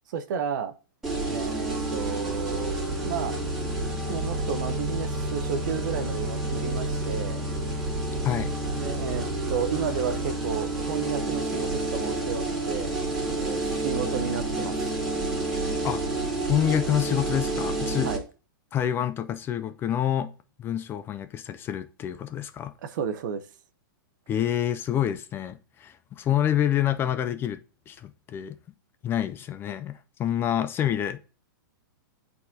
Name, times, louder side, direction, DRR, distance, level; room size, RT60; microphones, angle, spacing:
voice 1, 0.1-0.7 1.3-3.4 4.1-7.4 8.8-12.9 13.3-15.0 18.0-18.2 22.8-23.5, right 7 dB, 60° right, 0.8 m, -32 dB
sound 1, 1.0-18.2, right 2 dB, 5° right, 2.0 m, -29 dB
voice 2, 16.5-18.1 18.7-20.3 20.6-22.7 24.3-27.6 27.9-28.6 29.0-31.2, left 10 dB, 20° left, 0.3 m, -27 dB
8.9 x 4.0 x 2.7 m
hypercardioid pair, 140°, 12 cm